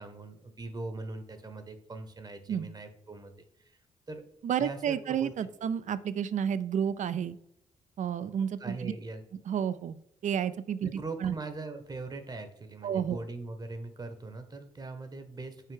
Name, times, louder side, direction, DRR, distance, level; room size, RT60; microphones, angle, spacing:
voice 1, 0.0-3.3 3.6-3.8 4.1-4.2 4.6-5.3 5.6-5.7 8.6-9.2 10.8-15.7, right 3 dB, 30° right, 8 dB, 0.9 m, -41 dB
voice 2, 4.4-7.4 8.0-8.9 9.5-10.0 10.2-11.3 12.8-13.2, right 8 dB, 60° right, 15 dB, 0.4 m, -31 dB
5.5 x 4.6 x 3.8 m, 0.77 s
cardioid pair, 85°, 14 cm